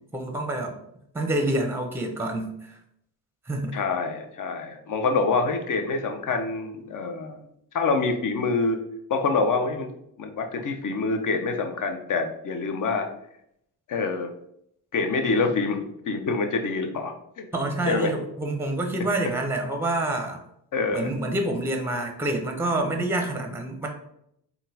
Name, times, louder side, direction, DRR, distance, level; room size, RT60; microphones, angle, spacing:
voice 1, 0.1-0.8 1.1-2.8 3.4-3.8 17.5-20.4 20.9-23.9, right 1 dB, 5° right, 4 dB, 0.7 m, -27 dB
voice 2, 3.7-7.5 7.7-8.8 9.1-9.9 10.2-13.1 13.9-14.3 14.9-17.5 17.9-18.1 20.7-21.1, left 4 dB, 45° left, 6 dB, 0.6 m, -26 dB
3.7 x 2.3 x 2.7 m, 0.75 s
hypercardioid pair, 45°, 45 cm